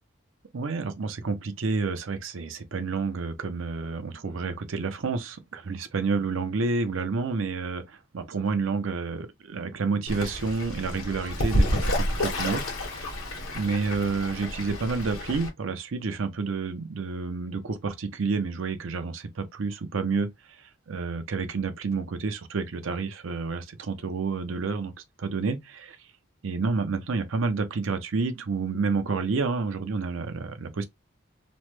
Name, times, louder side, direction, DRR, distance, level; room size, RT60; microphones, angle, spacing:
voice 1, 0.5-13.2 13.5-20.3 20.6-24.9 25.2-26.0 26.4-30.9, right 4 dB, 70° right, 0.5 m, -29 dB
Fowl / Bird, 10.1-15.5, left 1 dB, 80° left, 1.2 m, -29 dB
3.1 x 2.1 x 3.0 m
head